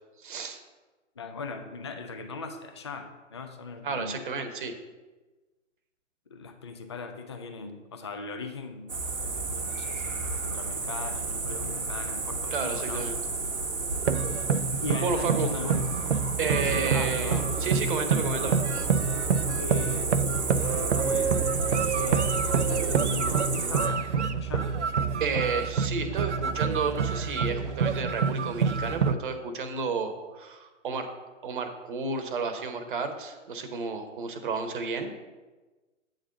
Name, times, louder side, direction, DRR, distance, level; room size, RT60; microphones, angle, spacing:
voice 1, 0.2-0.6 3.8-4.8 12.5-13.2 15.0-15.5 16.4-18.6 25.2-31.1 31.4-35.1, right 4 dB, 40° right, 7 dB, 1.0 m, -31 dB
voice 2, 1.2-4.2 6.3-8.9 9.2-13.1 14.8-15.9 16.9-17.5 19.6-20.2 20.5-21.4 21.9-22.4 22.7-24.1 24.3-24.7, left 4 dB, 25° left, 6 dB, 0.4 m, -39 dB
sound 1, 8.9-23.9, right 3 dB, 80° right, 1.0 m, -31 dB
sound 2, 14.1-29.2, right 6 dB, 65° right, 0.5 m, -27 dB
8.5 x 3.9 x 6.8 m, 1.2 s
figure-of-eight pair, 130°, 38 cm